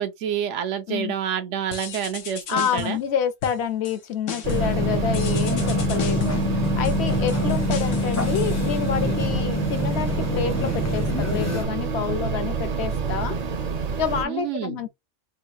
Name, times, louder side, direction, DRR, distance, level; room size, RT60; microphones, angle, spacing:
voice 1, 0.0-3.0 14.2-14.8, right 9 dB, 80° right, 1.0 m, -28 dB
sound 1, 1.7-3.1 3.4-4.0 4.3-4.8 5.1-9.1, left 6 dB, 85° left, 1.1 m, -36 dB
voice 2, 2.5-6.4 6.8-11.0 11.3-13.4 14.0-14.9, left 7 dB, 70° left, 0.9 m, -28 dB
sound 2, 4.4-14.3, right 5 dB, 50° right, 0.5 m, -27 dB
Norwegian Metro, 4.5-11.6, left 3 dB, 20° left, 0.5 m, -26 dB
3.6 x 2.2 x 2.7 m
omnidirectional pair, 1.2 m